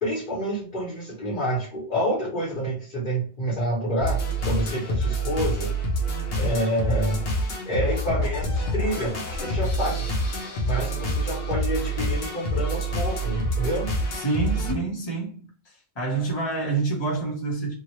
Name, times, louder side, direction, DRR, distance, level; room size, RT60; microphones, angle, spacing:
voice 1, 0.0-4.2 4.4-5.7 6.3-7.2 7.6-10.0 10.6-13.9, equal, 50° left, -5 dB, 1.1 m, -28 dB
sound 1, 4.0-14.7, right 1 dB, 65° left, 0.9 m, -27 dB
voice 2, 14.1-15.5 15.9-17.7, right 3 dB, 25° left, -3 dB, 0.9 m, -27 dB
2.8 x 2.4 x 3.0 m, 0.43 s
omnidirectional pair, 1.1 m